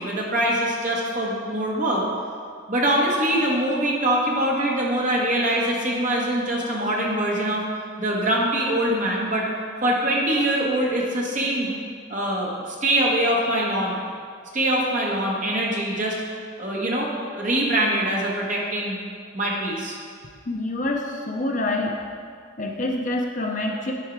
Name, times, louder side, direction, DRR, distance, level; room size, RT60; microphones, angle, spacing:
voice 1, 0.0-2.0 2.7-7.6 8.0-9.5 9.8-11.7 12.1-14.0 14.5-16.2 16.6-19.0 19.3-20.0, right 1 dB, 40° right, -3 dB, 1.3 m, -23 dB
voice 2, 20.5-22.0 22.6-23.9, left 2 dB, 35° left, 1 dB, 0.6 m, -26 dB
10.0 x 4.5 x 4.7 m, 2.1 s
head